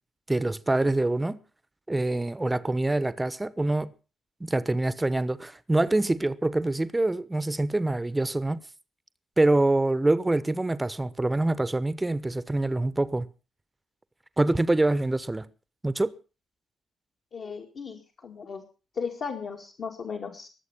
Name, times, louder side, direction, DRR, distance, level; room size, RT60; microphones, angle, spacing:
voice 1, 0.3-1.4 1.9-3.9 4.4-8.6 9.4-13.3 14.4-15.5 15.8-16.1, right 2 dB, 20° right, 1.0 m, -25 dB
voice 2, 17.3-18.6 18.9-20.5, left 5 dB, 50° left, 2.3 m, -36 dB
22.0 x 8.1 x 5.9 m
figure-of-eight pair, 40°, 0 cm